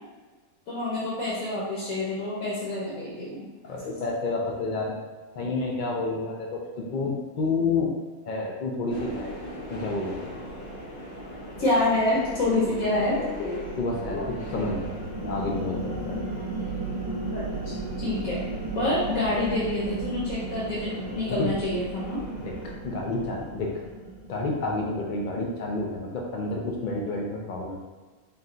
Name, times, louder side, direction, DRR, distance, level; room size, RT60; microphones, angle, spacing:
voice 1, 0.7-3.5 11.6-13.2 17.3-18.4 18.7-22.2, left 2 dB, 70° left, -7 dB, 1.3 m, -27 dB
voice 2, 3.6-5.0 5.4-8.0 8.3-9.3 9.7-10.3 13.8-14.9 15.2-16.2 21.3-21.5 22.4-23.8 24.3-27.8, left 3 dB, 90° left, -1 dB, 0.4 m, -29 dB
Subway metro underground, 8.9-22.7, left 1 dB, 45° left, 0.9 m, -39 dB
sound 1, 11.6-25.1, right 3 dB, 30° right, 0.4 m, -36 dB
4.2 x 2.2 x 3.7 m, 1.3 s
omnidirectional pair, 1.5 m